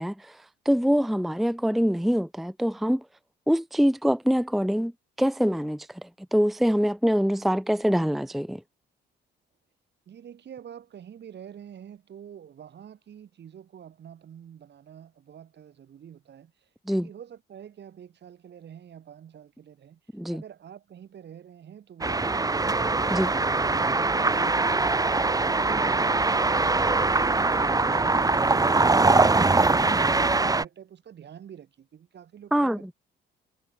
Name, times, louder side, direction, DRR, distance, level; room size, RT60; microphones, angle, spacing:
voice 1, 0.0-3.0 3.5-4.9 5.2-8.6 16.9-17.1 20.1-20.4 23.1-23.3 32.5-32.9, equal, ahead, 0.6 m, -24 dB
voice 2, 10.1-20.0 20.3-22.8 23.2-32.9, right 9 dB, 60° right, 7.0 m, -47 dB
sound 1, 22.0-30.6, right 3 dB, 20° right, 1.3 m, -22 dB
cardioid pair, 90°, 20 cm